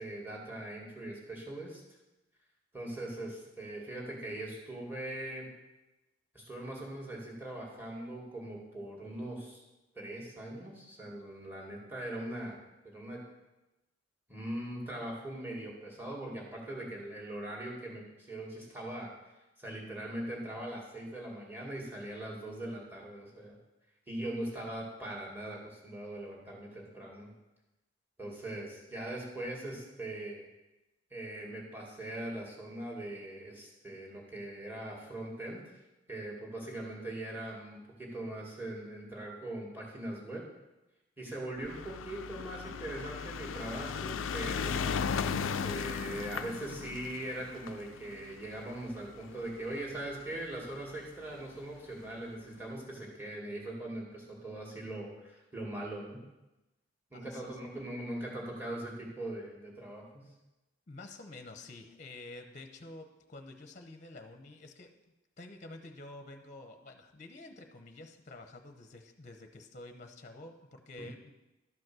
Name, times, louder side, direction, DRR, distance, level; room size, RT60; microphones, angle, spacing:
voice 1, 0.0-1.8 2.7-5.5 6.3-9.6 9.9-12.6 12.8-13.2 14.3-19.1 19.6-23.6 24.1-27.3 28.2-30.5 31.1-35.6 36.1-40.4 41.2-45.0 45.6-56.2 57.1-60.3 71.0-71.1, right 1 dB, 10° right, -2 dB, 2.3 m, -41 dB
sound 1, 41.6-50.1 50.9-51.0 51.2-51.3 51.6-51.7, left 6 dB, 80° left, 0.4 m, -36 dB
voice 2, 57.1-57.7 60.9-64.9 65.4-71.3, left 2 dB, 40° left, 6 dB, 0.8 m, -49 dB
12.5 x 5.3 x 6.1 m, 1.0 s
head